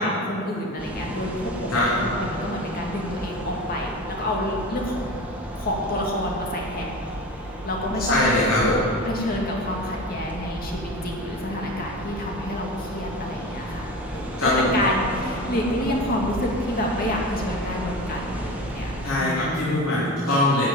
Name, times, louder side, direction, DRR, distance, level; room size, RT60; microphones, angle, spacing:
voice 1, 0.0-1.5 2.0-5.2 5.5-7.0 7.6-8.3 9.0-20.1, equal, 45° left, -1 dB, 2.3 m, -28 dB
sound 1, 0.8-19.1, equal, 5° right, 1.8 m, -33 dB
voice 2, 8.1-8.8 14.4-14.7 19.0-20.6, left 2 dB, 85° left, -9 dB, 3.4 m, -21 dB
13.0 x 6.6 x 9.0 m, 2.4 s
head